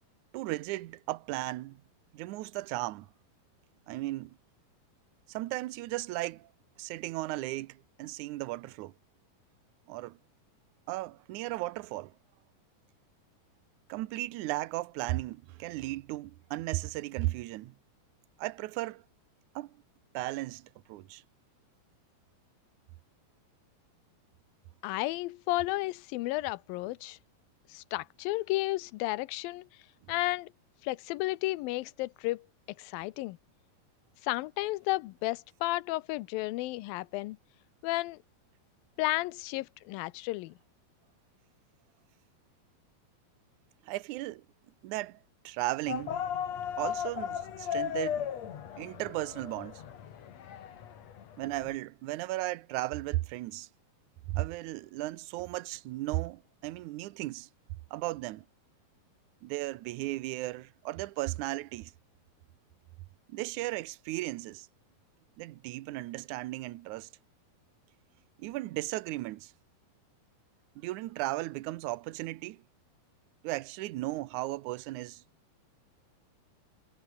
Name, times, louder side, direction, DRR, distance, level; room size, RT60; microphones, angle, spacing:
voice 1, 0.3-1.8 2.1-3.1 3.9-4.4 5.3-6.5 6.8-8.9 9.9-10.2 10.9-12.1 13.9-17.8 18.4-19.0 19.6-19.7 20.1-21.2 43.9-44.4 44.8-45.2 45.4-46.2 46.8-48.3 48.8-49.8 51.4-53.7 54.3-57.5 57.9-58.4 59.4-61.9 63.3-64.7 65.4-67.1 68.4-69.5 70.8-72.6 73.4-75.2, right 18 dB, 75° right, 1.8 m, -35 dB
voice 2, 24.8-27.2 27.7-29.7 30.1-30.5 30.8-32.4 32.8-33.4 34.2-37.4 37.8-38.2 39.0-40.5, left 19 dB, 80° left, 2.4 m, -32 dB
sound 1, 45.9-51.8, left 9 dB, 55° left, 2.7 m, -36 dB
omnidirectional pair, 4.3 m